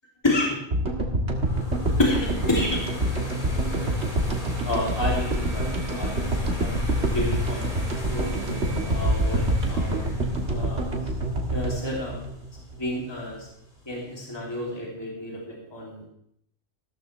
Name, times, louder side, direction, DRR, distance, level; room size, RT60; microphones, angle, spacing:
voice 1, 0.2-0.6 2.0-2.8 3.8-3.9 4.6-6.7 7.1-7.6 8.1-10.0 10.5-10.9 11.5-12.2 12.8-13.5 13.9-16.1, left 1 dB, 20° left, -4 dB, 3.1 m, -29 dB
sound 1, 0.7-13.0, right 1 dB, 80° right, 2.1 m, -26 dB
sound 2, 1.4-12.4, equal, 45° left, 3.6 m, -40 dB
15.5 x 13.5 x 3.3 m, 0.71 s
omnidirectional pair, 1.1 m